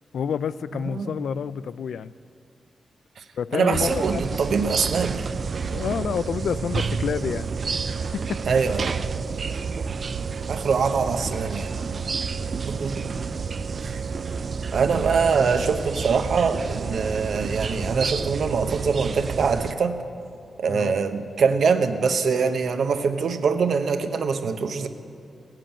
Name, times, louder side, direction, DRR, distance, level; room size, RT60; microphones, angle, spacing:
voice 1, 0.1-2.1 3.4-4.4 5.7-8.4 20.7-20.9, left 7 dB, 80° left, 16 dB, 0.3 m, -29 dB
voice 2, 0.8-1.2 3.2-3.3 3.5-5.3 8.5-8.9 10.5-11.7 12.6-13.1 13.8-14.0 14.7-20.0 20.6-24.9, right 5 dB, 65° right, 8 dB, 0.8 m, -23 dB
sound 1, 3.7-19.7, right 5 dB, 40° right, 0.3 m, -29 dB
16.5 x 7.6 x 8.9 m, 2.4 s
wide cardioid pair, 155°, 0 cm